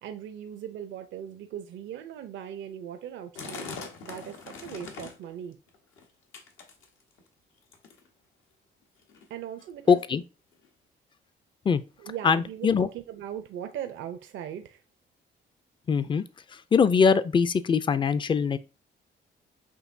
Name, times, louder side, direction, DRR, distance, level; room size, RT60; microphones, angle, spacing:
voice 1, 0.0-3.7 4.0-5.6 9.3-10.0 12.0-14.8, right 10 dB, 75° right, 0.5 m, -39 dB
sound 1, 3.4-5.3 5.7-6.0 6.3-7.2 7.7-8.1 8.8-8.9 9.1-9.2 9.8-9.9 10.6-10.7, left 4 dB, 80° left, 1.0 m, -41 dB
voice 2, 9.9-10.2 11.6-11.8 12.2-12.9 15.9-16.2 16.5-18.6, left 6 dB, 25° left, 0.4 m, -22 dB
6.2 x 2.7 x 2.6 m
cardioid pair, 90°, 20 cm